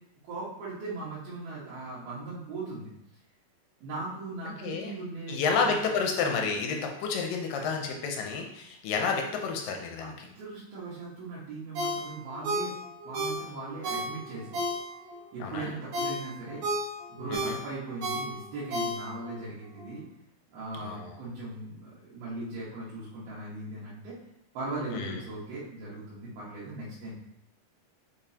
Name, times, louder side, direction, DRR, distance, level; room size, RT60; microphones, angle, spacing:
voice 1, 0.2-2.9 3.8-5.8 10.0-12.7 13.1-14.6 15.3-16.6 17.1-20.0 20.5-24.2 24.6-27.1, right 2 dB, 80° right, -10 dB, 3.4 m, -39 dB
voice 2, 4.4-4.9 5.3-10.3 15.4-15.7 17.3-17.6 20.8-21.1 24.9-25.2, left 5 dB, 75° left, 2 dB, 2.2 m, -30 dB
Ringtone, 11.7-15.2 15.6-19.4 19.8-19.9, equal, 60° right, 2.1 m, -33 dB
6.9 x 5.3 x 2.8 m, 0.77 s
omnidirectional pair, 4.3 m